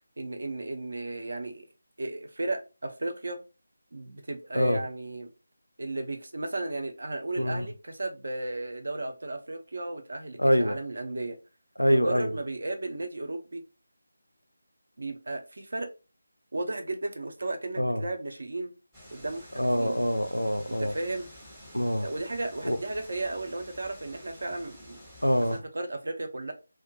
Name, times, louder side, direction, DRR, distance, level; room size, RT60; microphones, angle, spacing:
voice 1, 0.2-1.7 2.0-3.4 3.9-5.3 5.8-11.4 11.9-13.6 15.0-15.9 16.5-18.7 19.1-20.0 20.7-21.3 22.0-25.0 25.7-26.5, right 2 dB, 55° right, 0.5 m, -34 dB
voice 2, 7.4-7.7 10.4-10.8 11.8-12.3 17.8-18.0 19.5-20.9 21.7-22.1 22.6-22.8 25.2-25.6, equal, 85° left, 0.4 m, -25 dB
sound 1, 18.9-25.6, left 1 dB, 5° right, 0.8 m, -50 dB
2.2 x 2.1 x 2.6 m
figure-of-eight pair, 160°, 0 cm